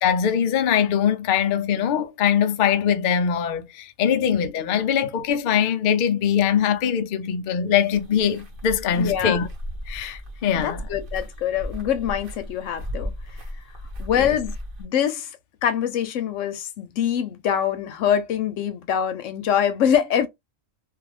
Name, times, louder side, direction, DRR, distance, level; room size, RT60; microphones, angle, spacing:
voice 1, 0.0-9.5 9.9-10.8 14.1-14.4, left 8 dB, 85° left, 0.4 m, -22 dB
sound 1, 7.9-14.8, equal, 45° right, 0.9 m, -36 dB
voice 2, 8.9-9.5 10.6-13.1 14.0-15.3 15.6-20.3, left 9 dB, 70° left, 0.9 m, -24 dB
2.5 x 2.4 x 3.2 m
omnidirectional pair, 1.4 m